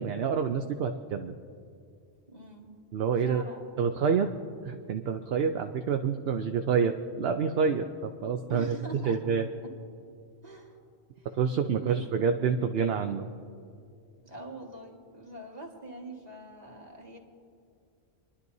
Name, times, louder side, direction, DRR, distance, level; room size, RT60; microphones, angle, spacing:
voice 1, 0.0-1.3 2.9-3.4 3.8-4.3 4.6-8.8 9.1-9.5 11.4-13.3, right 6 dB, 70° right, 6 dB, 0.8 m, -27 dB
voice 2, 2.3-2.7 3.2-3.9 4.2-4.3 8.5-9.2 9.6-9.7 10.4-10.8 11.2-11.4 11.7-12.0 14.2-17.2, right 1 dB, 40° right, -2 dB, 2.0 m, -44 dB
27.5 x 11.5 x 2.7 m, 2.4 s
omnidirectional pair, 1.1 m